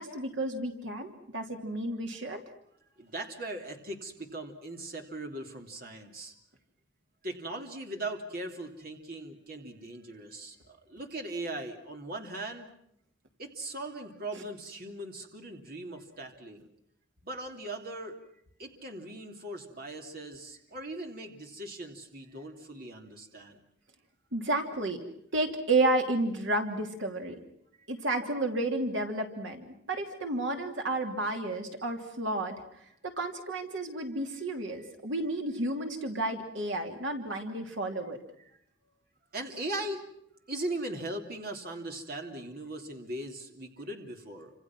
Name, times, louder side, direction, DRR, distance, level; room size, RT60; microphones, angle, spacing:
voice 1, 0.0-2.4 14.3-14.4 24.3-25.0 25.3-27.4 27.9-32.6 33.0-38.2, right 2 dB, 70° right, 4 dB, 2.9 m, -31 dB
voice 2, 3.0-6.3 7.2-12.7 13.4-16.7 17.2-18.2 18.6-23.6 39.3-40.0 40.5-44.5, right 2 dB, 45° right, 3 dB, 3.0 m, -39 dB
29.5 x 27.0 x 6.1 m, 0.73 s
head